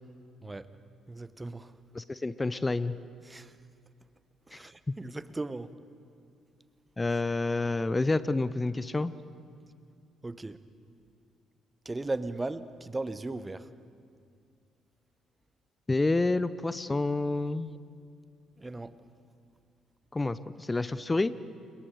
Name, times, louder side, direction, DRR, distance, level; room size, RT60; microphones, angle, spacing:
voice 1, 1.1-1.7 3.2-3.5 4.5-5.7 10.2-10.6 11.8-13.7 18.6-19.0, right 2 dB, 20° right, 14 dB, 1.1 m, -37 dB
voice 2, 1.9-2.9 4.5-4.6 7.0-9.1 15.9-17.7 20.1-21.3, left 2 dB, 20° left, 15 dB, 0.8 m, -28 dB
29.5 x 28.5 x 5.1 m, 2.3 s
figure-of-eight pair, 45°, 0 cm